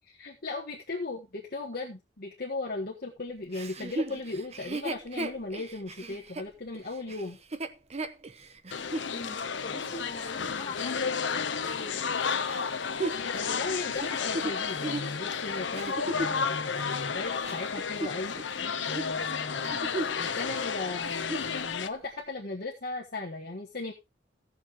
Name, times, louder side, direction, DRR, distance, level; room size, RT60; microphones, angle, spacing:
voice 1, 0.1-7.4 13.3-18.4 18.9-19.8 20.1-23.9, left 3 dB, 60° left, 1.4 m, -37 dB
Chuckle chortle, 3.5-9.1 9.7-9.8 12.5-16.4 17.1-18.5 18.8-19.1 19.5-20.3 20.6-20.7 21.1-21.5 22.2-22.3, right 2 dB, 35° right, 0.8 m, -36 dB
sound 1, 8.7-21.9, left 6 dB, 90° left, 0.8 m, -32 dB
voice 2, 9.1-12.1 19.6-20.0, left 2 dB, 40° left, 2.5 m, -43 dB
17.0 x 6.7 x 3.0 m
head